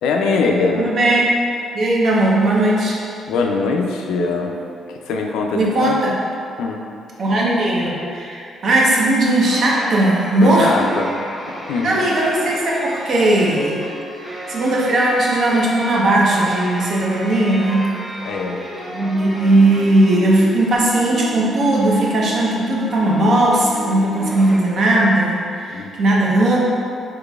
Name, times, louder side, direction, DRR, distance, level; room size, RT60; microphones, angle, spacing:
voice 1, 0.0-0.9 3.3-4.6 4.9-6.0 6.6-6.8 10.4-11.2 11.6-12.0 18.3-18.6 25.7-25.9, left 4 dB, 85° left, 2 dB, 0.3 m, -21 dB
voice 2, 0.7-1.2 1.7-3.0 5.5-6.2 7.2-10.7 11.8-13.8 14.5-17.9 18.9-26.6, right 1 dB, 60° right, -3 dB, 0.7 m, -17 dB
sound 1, 9.3-24.6, equal, 5° right, 1.0 m, -33 dB
3.8 x 3.0 x 2.3 m, 2.4 s
cardioid pair, 80°, 0 cm